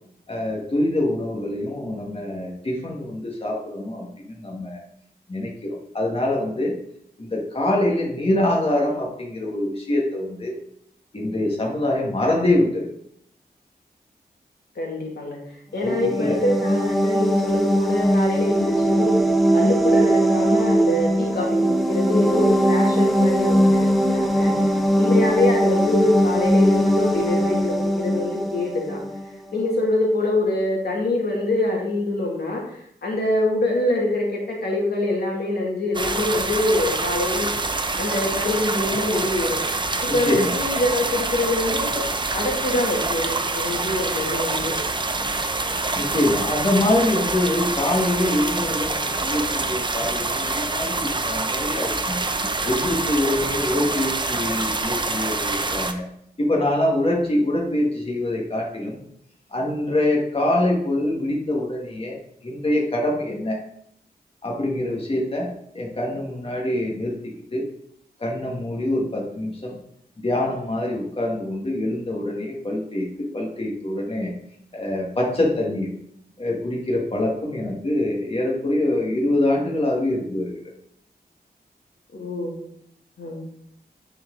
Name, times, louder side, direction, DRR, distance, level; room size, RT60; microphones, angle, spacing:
voice 1, 0.3-4.8 5.3-6.7 7.2-10.6 11.1-12.9 15.8-16.4 40.1-40.5 45.9-52.2 52.6-56.0 56.4-59.0 59.5-62.2 62.4-63.6 64.4-65.5 65.7-67.7 68.2-69.8 70.2-74.3 74.7-75.9 76.4-80.6, left 1 dB, 35° left, -2 dB, 1.6 m, -24 dB
voice 2, 14.8-15.4 15.7-19.1 19.5-29.0 29.5-37.5 38.0-39.6 40.0-44.7 82.1-82.6 83.2-83.5, left 2 dB, 70° left, -2 dB, 2.0 m, -25 dB
sound 1, 15.8-29.4, equal, ahead, 0.9 m, -20 dB
sound 2, 35.9-55.9, right 3 dB, 30° right, 0.7 m, -26 dB
9.6 x 4.5 x 3.8 m, 0.71 s
wide cardioid pair, 80°, 17 cm